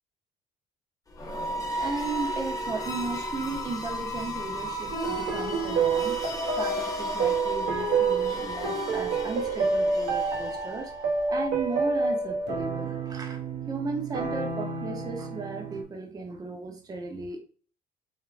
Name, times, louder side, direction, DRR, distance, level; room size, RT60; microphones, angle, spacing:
sound 1, 1.1-11.0, equal, 20° left, 0.6 m, -34 dB
voice 1, 1.8-6.2 6.5-10.9 11.3-17.4, right 3 dB, 20° right, 1 dB, 0.6 m, -35 dB
sound 2, 4.9-15.8, right 4 dB, 85° right, 0.8 m, -29 dB
3.2 x 2.4 x 2.4 m, 0.42 s
cardioid pair, 110°, 17 cm